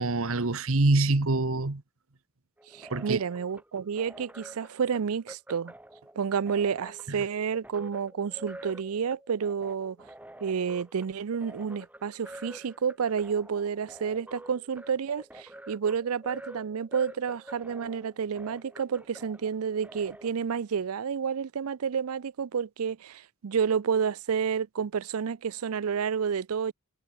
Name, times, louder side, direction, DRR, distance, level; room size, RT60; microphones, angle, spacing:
voice 1, 0.0-1.8 2.9-3.2 7.2-7.3, right 2 dB, 70° right, 1.3 m, -25 dB
sound 1, 2.6-20.3, right 1 dB, 5° right, 1.4 m, -48 dB
voice 2, 2.7-5.7 6.2-10.0 10.4-26.7, right 6 dB, 90° right, 0.5 m, -30 dB
head